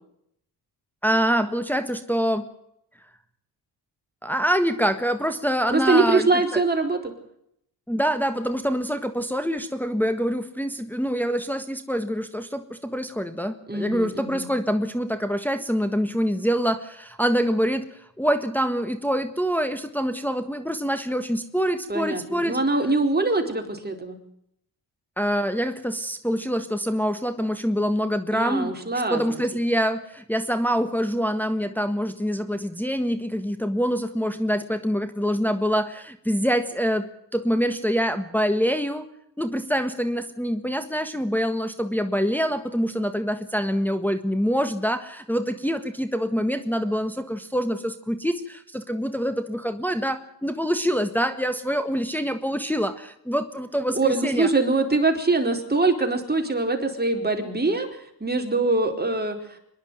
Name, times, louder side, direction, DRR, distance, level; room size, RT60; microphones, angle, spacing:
voice 1, 1.0-2.4 4.2-6.6 7.9-22.6 25.2-28.7 29.1-39.1 39.4-54.5, equal, 5° left, 7 dB, 1.6 m, -25 dB
voice 2, 5.7-7.1 13.7-14.5 21.9-24.2 28.3-29.4 53.9-59.6, right 3 dB, 20° right, 3 dB, 4.4 m, -23 dB
25.0 x 11.0 x 9.4 m, 0.74 s
cardioid pair, 65°, 43 cm